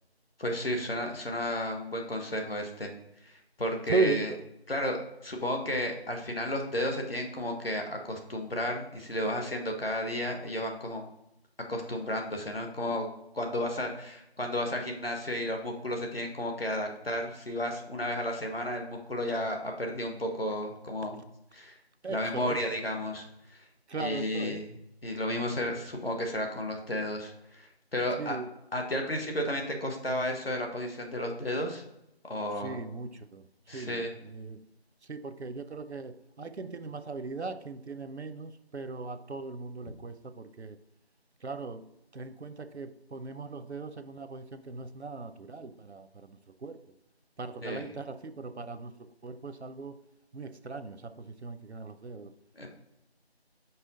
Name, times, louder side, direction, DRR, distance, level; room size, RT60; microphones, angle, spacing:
voice 1, 0.4-2.9 3.3-4.3 4.7-11.0 11.7-13.1 13.3-21.2 21.5-21.8 22.1-23.2 24.0-24.7 25.0-28.4 28.7-31.8 32.2-32.8 33.7-34.1 47.6-47.9 52.6-52.7, left 1 dB, 65° left, 1.4 m, -33 dB
voice 2, 3.9-4.4 22.0-22.6 23.9-24.6 28.2-28.5 32.6-33.4 33.7-34.6 35.1-40.8 41.4-41.9 42.1-46.3 46.6-46.8 47.4-48.9 49.2-50.0 50.3-52.3, right 3 dB, 85° right, 0.6 m, -37 dB
5.5 x 4.4 x 3.8 m
figure-of-eight pair, 170°, 32 cm